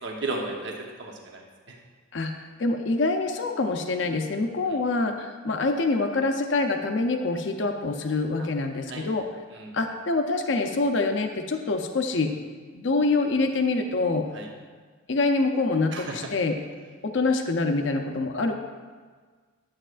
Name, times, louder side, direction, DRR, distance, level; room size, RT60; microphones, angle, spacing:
voice 1, 0.0-1.8 8.4-8.5 8.9-9.0 9.5-9.7 14.3-14.5 15.9-16.2, right 3 dB, 60° right, 0 dB, 1.0 m, -34 dB
voice 2, 2.1-9.2 9.7-12.3 12.7-14.3 15.1-16.6 17.0-18.5, left 3 dB, 65° left, 5 dB, 0.6 m, -25 dB
11.0 x 7.7 x 2.5 m, 1.5 s
head